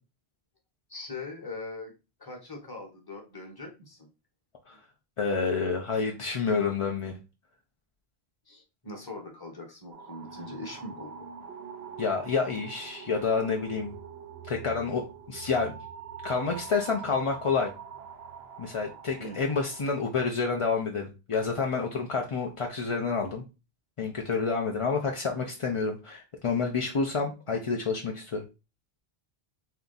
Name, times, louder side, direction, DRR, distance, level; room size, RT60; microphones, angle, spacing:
voice 1, 0.9-1.9 2.2-4.1 8.5-11.1 19.2-19.4, left 2 dB, 25° left, 2 dB, 1.0 m, -41 dB
voice 2, 5.2-7.2 12.0-13.9 14.4-15.8 16.2-17.7 18.6-23.4 24.0-28.4, left 4 dB, 45° left, 1 dB, 0.4 m, -29 dB
sound 1, 9.9-19.9, right 7 dB, 75° right, 0.9 m, -44 dB
3.4 x 2.8 x 3.9 m, 0.29 s
omnidirectional pair, 1.1 m